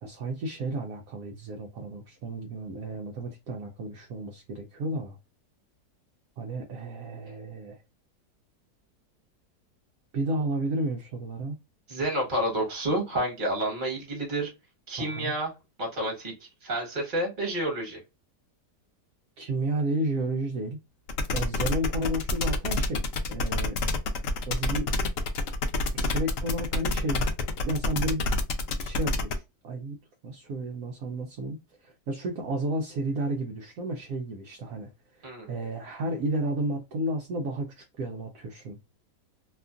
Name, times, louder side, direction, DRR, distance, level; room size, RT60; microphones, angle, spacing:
voice 1, 0.0-5.2 6.4-7.8 10.1-11.6 15.0-15.3 19.4-20.8 21.3-23.0 23.3-23.8 24.5-24.9 25.9-27.3 27.6-28.3 28.8-30.0 30.2-38.8, right 1 dB, 70° right, 0.9 m, -32 dB
voice 2, 11.9-14.5 14.9-15.5 15.8-18.0 35.2-35.5, right 1 dB, 30° right, 1.3 m, -29 dB
sound 1, 21.1-29.3, left 2 dB, 70° left, 0.8 m, -28 dB
2.9 x 2.4 x 2.4 m
omnidirectional pair, 1.8 m